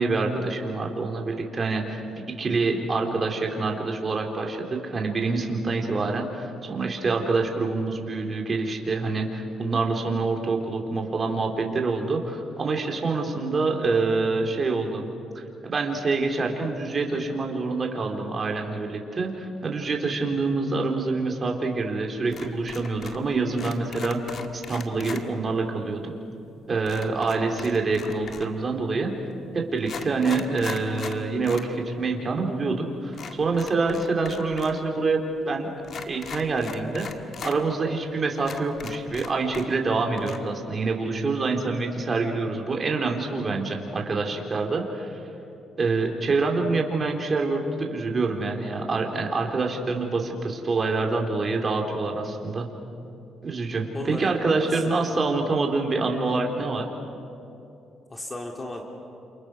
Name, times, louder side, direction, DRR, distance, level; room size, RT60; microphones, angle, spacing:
voice 1, 0.0-2.0 2.4-15.1 15.6-26.1 26.7-29.1 29.5-35.7 36.1-37.1 37.4-45.2 45.8-52.7 53.4-56.9, right 3 dB, 40° right, 2 dB, 4.1 m, -26 dB
sound 1, 22.3-23.3 23.5-25.2 26.9-28.6 29.3-29.4 29.8-31.7 32.0-32.1 33.1-34.8 35.1-35.2 35.8-37.6 38.0-38.1 38.4-39.9 40.2-40.4, left 6 dB, 60° left, 1.9 m, -39 dB
voice 2, 53.9-54.3 54.6-55.0 58.1-58.8, left 1 dB, 25° left, 1 dB, 3.0 m, -35 dB
29.5 x 28.0 x 6.4 m, 2.8 s
cardioid pair, 90°, 0 cm